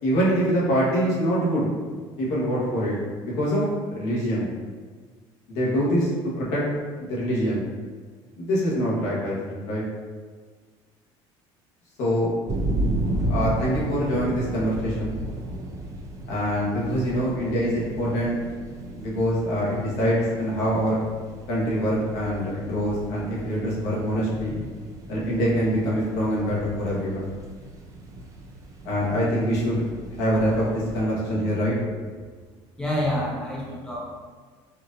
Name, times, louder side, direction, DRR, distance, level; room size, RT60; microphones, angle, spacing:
voice 1, 0.0-1.7 2.2-3.0 3.2-3.6 3.9-4.5 5.5-6.1 6.4-6.6 7.0-7.6 8.4-9.8 12.0-12.3 13.3-15.2 16.3-18.4 19.0-21.0 21.5-24.6 25.1-27.3 28.8-29.8 30.1-31.7, equal, 80° left, -6 dB, 1.2 m, -24 dB
sound 1, 12.5-31.0, right 1 dB, 30° right, 0.5 m, -34 dB
voice 2, 32.8-34.1, left 1 dB, 5° left, -5 dB, 0.8 m, -27 dB
4.3 x 2.6 x 2.6 m, 1.5 s
cardioid pair, 125°, 11 cm